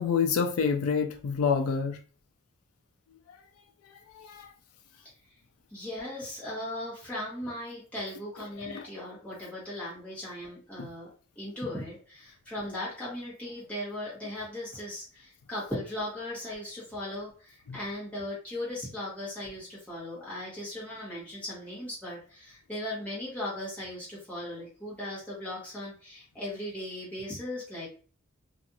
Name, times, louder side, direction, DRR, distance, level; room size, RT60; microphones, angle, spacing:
voice 1, 0.0-2.0 4.1-4.5 8.6-8.9 10.8-10.9 17.7-17.8, left 6 dB, 90° left, 5 dB, 0.3 m, -28 dB
voice 2, 5.7-11.1 11.4-27.9, left 1 dB, 5° left, -8 dB, 1.1 m, -38 dB
2.5 x 2.3 x 2.7 m, 0.41 s
head